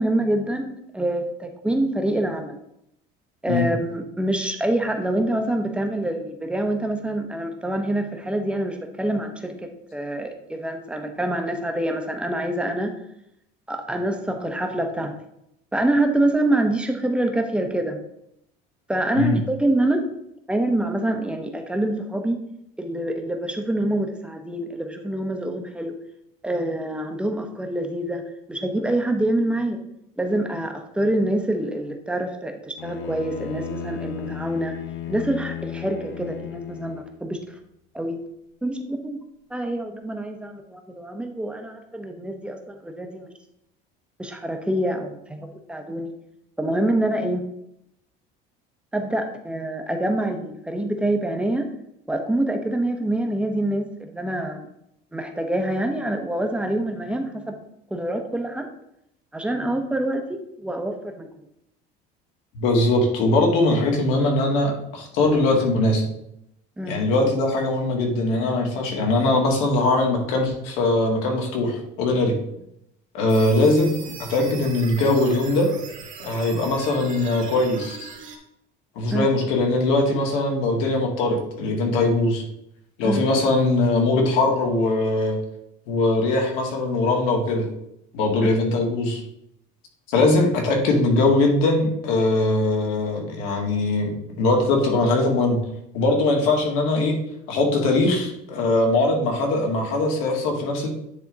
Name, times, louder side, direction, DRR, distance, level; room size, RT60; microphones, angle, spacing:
voice 1, 0.0-2.6 3.4-12.9 13.7-15.1 15.7-18.0 18.9-20.0 20.5-22.4 22.8-26.0 26.4-28.2 28.5-29.8 30.2-34.8 35.1-37.6 37.9-38.2 38.6-39.2 39.5-43.3 44.2-46.1 46.6-47.4 48.9-51.7 52.1-54.7 55.1-57.6 57.9-58.7 59.3-61.3 66.8-67.0 79.1-79.3 83.0-83.2 88.4-88.5, right 1 dB, 5° right, 5 dB, 0.8 m, -26 dB
Bowed string instrument, 32.8-37.2, left 9 dB, 65° left, 0.6 m, -35 dB
voice 2, 62.5-66.1 66.9-72.3 73.1-75.7 76.2-78.1 79.0-82.4 83.0-85.4 85.9-87.7 88.1-89.2 90.1-94.1 94.4-95.6 95.9-97.2 97.5-100.9, left 2 dB, 80° left, 1 dB, 1.9 m, -21 dB
sound 1, 73.3-78.4, right 6 dB, 40° right, 1.3 m, -40 dB
9.5 x 3.6 x 3.9 m, 0.78 s
cardioid pair, 145°, 20 cm